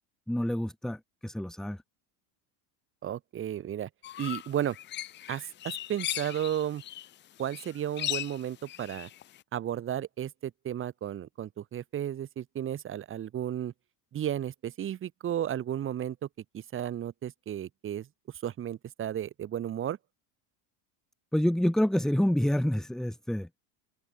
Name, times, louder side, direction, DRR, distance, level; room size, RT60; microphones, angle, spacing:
voice 1, 0.3-1.8 21.3-23.5, equal, ahead, 1.1 m, -27 dB
voice 2, 3.0-3.9 4.2-4.8 5.3-6.8 7.4-9.1 9.5-13.7 14.1-16.3 16.5-18.1 18.4-20.0, right 10 dB, 25° right, 1.1 m, -33 dB
sound 1, 4.0-7.1 7.4-9.4, left 13 dB, 25° left, 0.5 m, -37 dB
open air
supercardioid pair, 130°, 46 cm